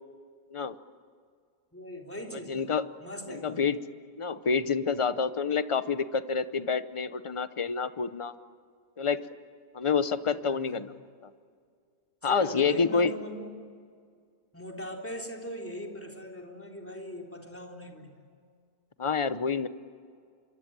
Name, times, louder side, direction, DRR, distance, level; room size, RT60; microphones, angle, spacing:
voice 1, 1.7-3.6 10.2-10.8 12.2-13.6 14.5-18.1, equal, 10° left, 1 dB, 3.6 m, -40 dB
voice 2, 2.5-2.8 3.3-3.8 4.2-8.3 9.0-9.3 9.7-10.9 12.2-13.1 19.0-19.7, left 5 dB, 30° left, 12 dB, 0.6 m, -28 dB
27.0 x 23.5 x 8.9 m, 2.1 s
omnidirectional pair, 1.7 m